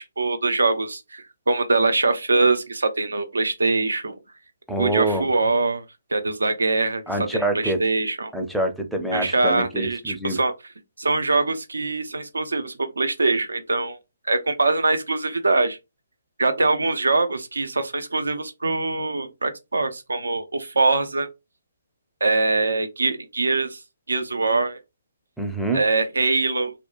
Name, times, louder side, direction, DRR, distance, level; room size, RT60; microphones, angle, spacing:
voice 1, 0.0-4.2 4.8-5.8 6.1-7.0 7.3-8.3 9.1-10.5 11.0-14.0 14.3-15.8 16.4-21.3 22.2-23.8 24.1-24.8 25.7-26.7, right 3 dB, 80° right, 0.5 m, -23 dB
voice 2, 4.7-5.3 7.1-7.8 8.3-10.4 25.4-25.8, right 1 dB, ahead, 0.5 m, -25 dB
2.8 x 2.1 x 2.4 m
figure-of-eight pair, 140°, 0 cm